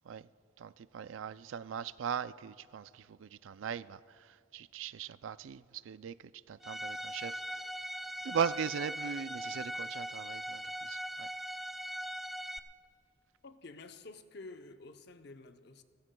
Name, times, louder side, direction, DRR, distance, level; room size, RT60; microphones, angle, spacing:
voice 1, 0.6-4.0 4.3-6.2 6.5-7.6 8.2-11.3, right 7 dB, 90° right, 0.4 m, -39 dB
Bowed string instrument, 6.6-12.6, equal, ahead, 0.3 m, -40 dB
voice 2, 13.4-15.8, left 3 dB, 60° left, 0.7 m, -50 dB
29.0 x 15.5 x 2.3 m
head